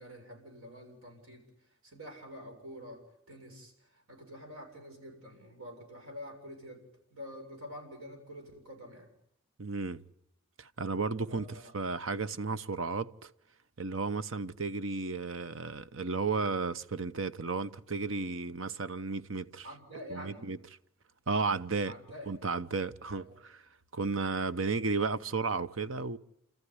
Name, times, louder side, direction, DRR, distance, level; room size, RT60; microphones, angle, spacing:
voice 1, 0.0-1.5 1.8-3.0 3.3-6.8 7.1-9.1 11.3-11.7 19.6-20.5 21.9-22.6 23.1-23.4, equal, 85° right, 7.3 m, -47 dB
voice 2, 9.6-10.0 10.6-13.3 13.8-19.7 20.1-20.6 21.3-21.9 22.3-23.6 23.9-26.2, right 4 dB, 65° right, 0.8 m, -33 dB
30.0 x 14.0 x 9.7 m
head